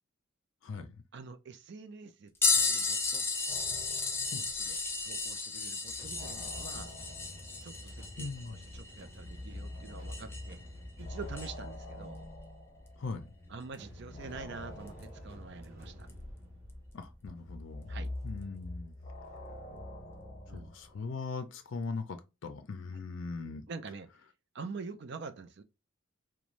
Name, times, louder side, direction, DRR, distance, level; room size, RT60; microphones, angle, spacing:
voice 1, 1.1-3.3 4.6-4.8 5.0-6.9 7.6-10.6 11.0-12.2 13.5-16.1 17.9-18.1 20.5-20.7 23.7-24.1 24.5-25.6, right 4 dB, 55° right, 0.4 m, -46 dB
sound 1, 2.4-10.6 11.3-11.5 13.7-13.8 14.9-15.0 16.1-16.2, left 4 dB, 10° left, 0.5 m, -33 dB
sound 2, 3.5-5.3 5.6-13.5 14.1-21.0, left 1 dB, 35° left, 1.0 m, -46 dB
sound 3, 6.0-17.9, equal, 15° right, 1.3 m, -52 dB
voice 2, 8.2-8.6 13.0-13.3 16.9-17.8 18.2-18.9 20.5-23.6, left 4 dB, 70° left, 0.4 m, -40 dB
3.0 x 2.2 x 2.5 m
head